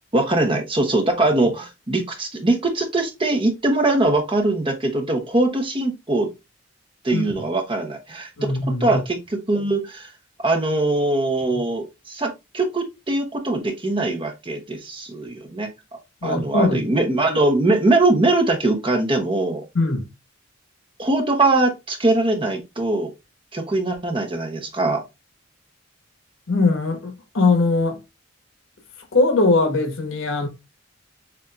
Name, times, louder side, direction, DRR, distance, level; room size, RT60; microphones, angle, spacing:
voice 1, 0.1-6.3 7.0-8.5 8.8-10.1 10.4-15.7 16.2-19.6 21.0-23.1 23.5-25.0, right 2 dB, 25° right, 0.9 m, -21 dB
voice 2, 8.4-9.0 11.5-11.7 16.2-16.8 19.7-20.1 26.5-28.0 29.1-30.5, left 3 dB, 80° left, 1.3 m, -20 dB
6.8 x 2.7 x 2.4 m
head